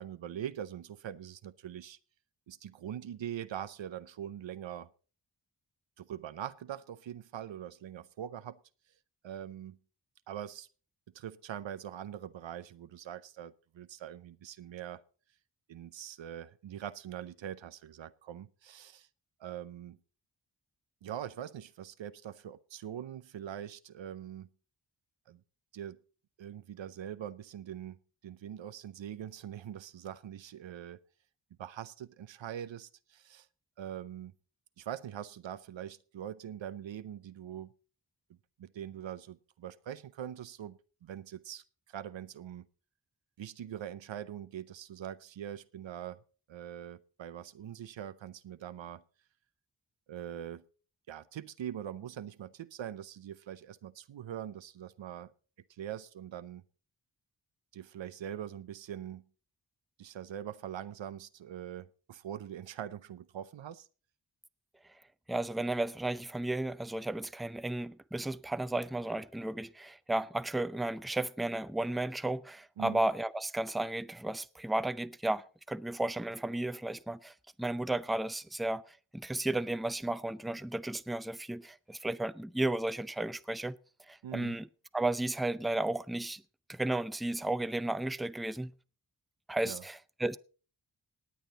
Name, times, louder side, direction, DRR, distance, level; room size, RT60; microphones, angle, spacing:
voice 1, 0.0-2.0 2.5-4.9 6.0-8.6 9.2-9.8 10.3-10.7 11.1-15.0 15.7-19.1 19.4-20.0 21.0-24.5 25.3-25.4 25.7-26.0 26.4-31.0 31.6-33.5 33.8-34.3 34.8-37.7 38.3-42.7 43.4-46.2 46.5-49.0 50.1-50.7 51.1-55.3 55.7-56.6 57.7-59.3 60.0-63.9 72.8-73.0 84.2-84.6 89.6-89.8, right 10 dB, 90° right, 0.7 m, -43 dB
voice 2, 65.3-77.3 77.6-83.8 84.1-84.7 84.9-86.4 86.7-88.7 89.5-90.4, right 2 dB, ahead, 0.5 m, -34 dB
18.5 x 8.7 x 3.9 m
cardioid pair, 55°, 44 cm